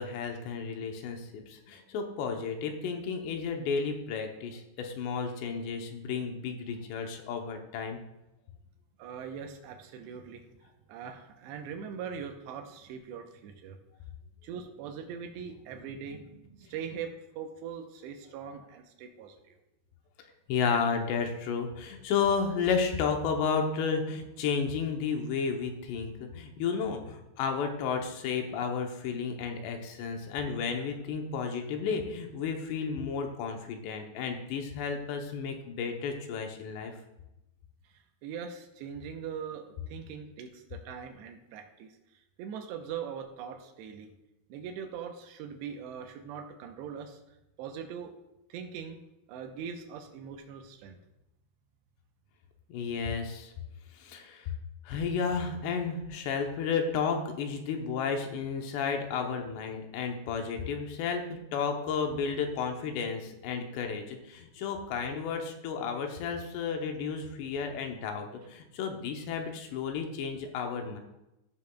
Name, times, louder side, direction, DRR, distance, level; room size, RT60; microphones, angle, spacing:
voice 1, 0.0-8.0 20.5-36.9 52.7-53.5 53.9-54.5 54.8-71.0, left 5 dB, 80° left, 3 dB, 3.0 m, -32 dB
voice 2, 9.0-10.5 10.9-13.8 14.4-19.6 37.9-41.9 42.4-44.1 44.5-47.2 47.6-48.1 48.5-49.0 49.3-51.0, right 7 dB, 80° right, 5 dB, 2.9 m, -41 dB
15.5 x 6.9 x 2.3 m, 0.91 s
omnidirectional pair, 5.0 m